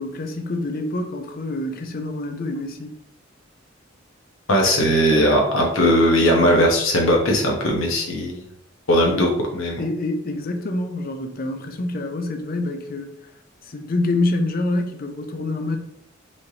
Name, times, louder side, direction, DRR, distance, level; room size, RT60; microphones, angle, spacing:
voice 1, 0.0-2.9 9.1-9.3 9.8-13.1 13.6-15.8, left 2 dB, 45° left, 0.5 m, -26 dB
voice 2, 4.5-8.4 8.9-9.8, equal, 90° left, 0.9 m, -18 dB
4.2 x 3.2 x 2.8 m
head